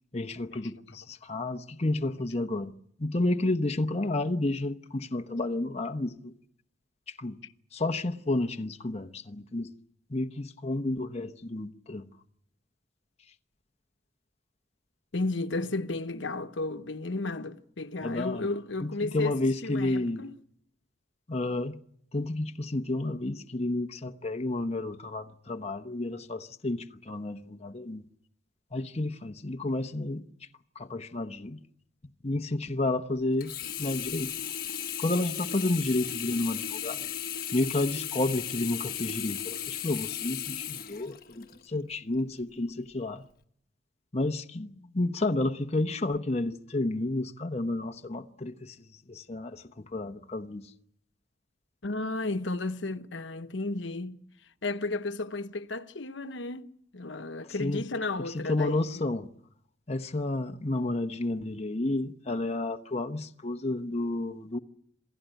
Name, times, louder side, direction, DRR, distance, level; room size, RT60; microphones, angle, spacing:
voice 1, 0.1-2.7 3.0-6.3 7.1-7.4 7.7-9.7 10.1-12.1 18.0-18.5 18.8-20.2 21.3-21.8 22.1-28.1 28.7-30.3 30.7-31.6 32.2-33.5 33.8-34.3 35.0-37.1 37.5-43.3 44.1-50.7 57.6-57.8 58.2-59.3 59.9-64.6, left 2 dB, 35° left, 0.9 m, -31 dB
voice 2, 15.1-20.4 51.8-54.2 54.6-56.7 56.9-59.0, left 2 dB, 75° left, 1.0 m, -33 dB
Sink (filling or washing), 33.4-41.6 42.2-42.3, left 10 dB, 50° left, 1.3 m, -36 dB
27.5 x 16.0 x 9.0 m
head